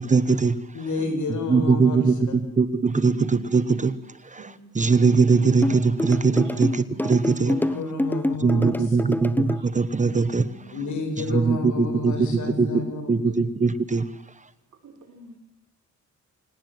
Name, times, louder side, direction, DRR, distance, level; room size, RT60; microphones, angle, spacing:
voice 1, 0.0-0.6 1.5-2.1 2.6-3.9 4.3-7.5 8.4-10.4 11.3-12.1 12.6-12.7 13.1-14.1, right 4 dB, 25° right, 15 dB, 1.1 m, -21 dB
voice 2, 0.7-2.1 7.4-9.2 10.7-13.4, left 3 dB, 75° left, 6 dB, 7.4 m, -31 dB
voice 3, 3.0-3.5 3.7-3.8 4.4-4.5 5.9-6.5 6.9-7.0 7.7-7.8 9.0-9.3 10.0-10.9 14.8-15.4, right 5 dB, 80° right, 4 dB, 6.0 m, -43 dB
sound 1, 5.6-9.6, left 1 dB, 5° left, 1.0 m, -26 dB
28.0 x 18.5 x 7.8 m, 0.81 s
wide cardioid pair, 140°, 30 cm